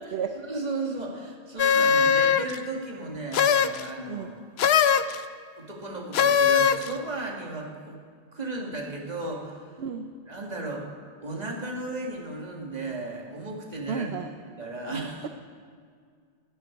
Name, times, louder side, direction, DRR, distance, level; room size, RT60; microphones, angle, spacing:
voice 1, 0.5-4.3 4.6-4.9 5.6-8.0 8.3-9.6 10.3-10.9 11.2-14.1 14.6-15.3, right 2 dB, 35° right, -1 dB, 2.1 m, -35 dB
sound 1, 1.6-2.6 3.3-3.8 4.6-5.2 6.1-6.9, left 7 dB, 65° left, 0.8 m, -20 dB
voice 2, 13.9-14.3 15.2-15.3, right 6 dB, 65° right, 6 dB, 0.9 m, -31 dB
13.5 x 7.6 x 9.6 m, 2.1 s
omnidirectional pair, 1.2 m